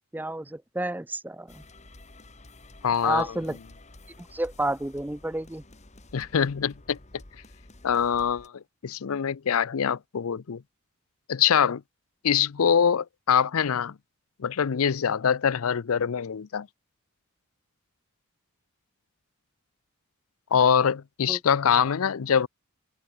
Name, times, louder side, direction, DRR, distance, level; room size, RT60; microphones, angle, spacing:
voice 1, 0.1-1.6 3.0-3.6 4.2-5.6 21.3-21.4, right 1 dB, 10° right, 0.5 m, -30 dB
sound 1, 1.5-8.5, left 2 dB, 30° left, 1.9 m, -51 dB
voice 2, 2.8-3.3 6.1-7.0 7.8-10.6 11.3-11.8 12.2-13.9 14.4-16.7 20.5-22.5, left 7 dB, 70° left, 0.5 m, -24 dB
head